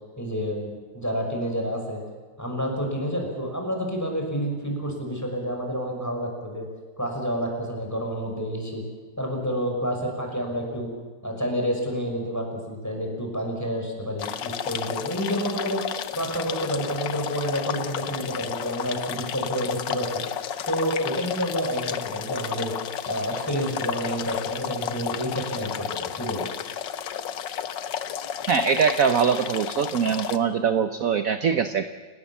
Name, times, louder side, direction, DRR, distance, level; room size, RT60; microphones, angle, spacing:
voice 1, 0.2-2.0 2.4-6.7 7.0-8.8 9.2-10.9 11.2-15.9 16.2-20.2 20.7-22.7 23.1-26.5, equal, 10° left, 1 dB, 5.8 m, -29 dB
sound 1, 14.2-30.4, left 9 dB, 75° left, 1.7 m, -32 dB
voice 2, 28.5-31.8, right 6 dB, 55° right, 10 dB, 1.2 m, -22 dB
29.5 x 18.0 x 7.2 m, 1.4 s
omnidirectional pair, 2.0 m